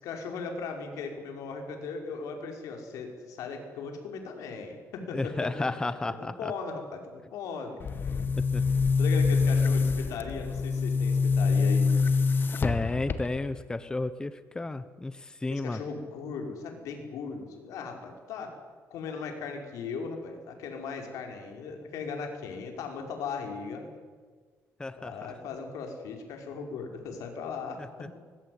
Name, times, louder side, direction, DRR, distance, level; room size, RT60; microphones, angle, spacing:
voice 1, 0.0-5.7 6.2-7.8 9.0-11.9 15.5-18.5 18.9-23.9 24.9-28.2, left 5 dB, 85° left, 3 dB, 5.6 m, -38 dB
voice 2, 5.1-6.5 8.4-8.6 12.6-15.8 24.8-25.2, left 2 dB, 15° left, 12 dB, 1.1 m, -32 dB
Boom, 7.8-13.6, left 4 dB, 40° left, 1.8 m, -25 dB
24.5 x 21.5 x 9.8 m, 1.5 s
cardioid pair, 130°, 6 cm